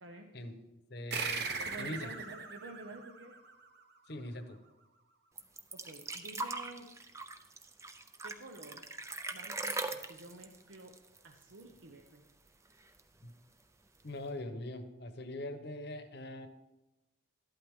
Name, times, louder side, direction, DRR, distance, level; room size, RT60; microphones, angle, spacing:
voice 1, 0.0-0.4 1.6-3.4 5.7-6.9 8.2-8.9 9.3-10.9 11.2-12.2, right 2 dB, 70° right, 3 dB, 0.8 m, -50 dB
voice 2, 0.9-1.5 1.8-2.1 4.1-4.6 13.2-13.3 14.0-16.5, left 1 dB, 55° left, 8 dB, 1.0 m, -42 dB
sound 1, 1.1-4.1, right 5 dB, 50° right, 1.1 m, -39 dB
sound 2, 5.4-11.8 12.1-12.2 12.5-13.2 14.0-14.1, right 3 dB, 15° right, 0.5 m, -41 dB
12.5 x 11.5 x 3.6 m, 1.0 s
head